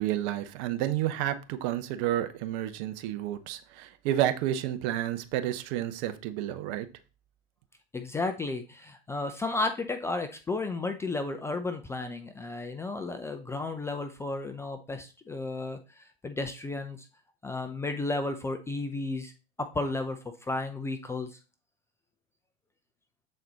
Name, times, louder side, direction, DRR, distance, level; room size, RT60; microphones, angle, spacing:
voice 1, 0.0-6.9, right 12 dB, 40° right, 0.9 m, -30 dB
voice 2, 7.9-17.1 17.4-19.3 19.6-21.4, left 3 dB, 10° left, 0.5 m, -33 dB
7.6 x 4.2 x 4.0 m
hypercardioid pair, 100°, 31 cm